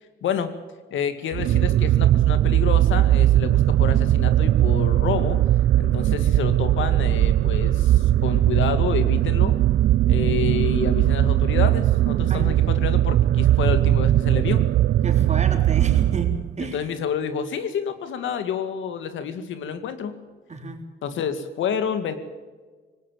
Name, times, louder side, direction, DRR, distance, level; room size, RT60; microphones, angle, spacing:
voice 1, 0.2-0.5 0.9-5.4 5.8-9.6 10.1-14.6 16.7-20.2 21.0-22.2, left 7 dB, 80° left, 10 dB, 2.1 m, -29 dB
sound 1, 1.3-16.7, right 13 dB, 60° right, 0.5 m, -19 dB
voice 2, 12.3-12.8 15.0-16.8 20.5-20.8, right 3 dB, 35° right, 5 dB, 3.8 m, -32 dB
19.0 x 18.5 x 7.5 m, 1.4 s
cardioid pair, 90°, 20 cm